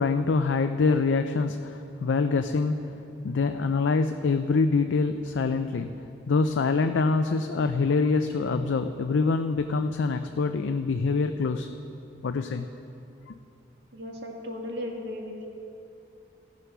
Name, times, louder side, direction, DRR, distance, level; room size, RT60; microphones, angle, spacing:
voice 1, 0.0-3.0 3.2-11.7 12.2-12.7 13.3-13.4, left 4 dB, 80° left, 8 dB, 0.4 m, -25 dB
voice 2, 13.9-15.5, left 1 dB, 65° right, 0 dB, 1.8 m, -36 dB
16.5 x 6.7 x 6.0 m, 2.8 s
head